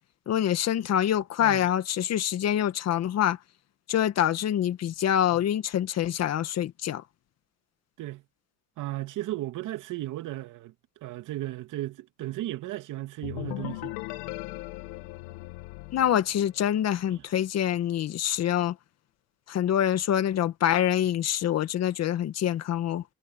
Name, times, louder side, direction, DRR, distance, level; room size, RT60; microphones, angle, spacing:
voice 1, 0.3-3.4 3.9-7.0 15.9-18.7 19.5-23.0, left 10 dB, 45° left, 1.8 m, -25 dB
voice 2, 1.4-1.7 8.0-8.2 8.8-10.7 11.0-14.0 17.1-17.2, right 15 dB, 60° right, 2.8 m, -35 dB
sound 1, 13.2-16.9, left 21 dB, 85° left, 1.2 m, -38 dB
cardioid pair, 120°, 35 cm